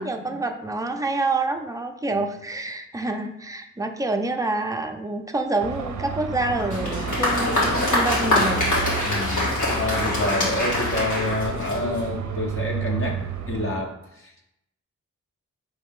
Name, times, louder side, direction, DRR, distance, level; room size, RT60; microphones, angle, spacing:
voice 1, 0.0-8.7, right 2 dB, 10° right, 5 dB, 0.5 m, -27 dB
Car passing by / Traffic noise roadway noise / Engine, 5.6-13.7, right 6 dB, 65° right, 0.5 m, -31 dB
Applause, 6.6-12.2, left 1 dB, 75° left, 1.7 m, -24 dB
voice 2, 9.0-13.2 13.5-13.9 14.2-14.4, left 2 dB, 45° left, -1 dB, 0.8 m, -28 dB
4.4 x 3.3 x 3.6 m, 0.82 s
cardioid pair, 75°, 30 cm